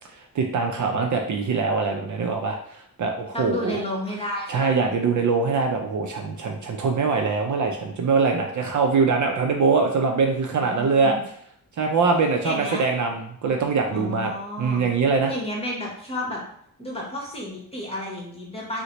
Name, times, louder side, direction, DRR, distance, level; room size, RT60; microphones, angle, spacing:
voice 1, 0.1-3.8 4.5-11.2 11.8-14.3 14.6-15.3, right 4 dB, 55° right, 3 dB, 0.5 m, -23 dB
voice 2, 3.3-4.7 10.6-11.2 12.4-12.8 13.9-14.9 15.3-16.4 16.8-18.8, left 1 dB, 15° left, -3 dB, 1.0 m, -31 dB
3.8 x 2.1 x 2.9 m, 0.66 s
cardioid pair, 95°, 36 cm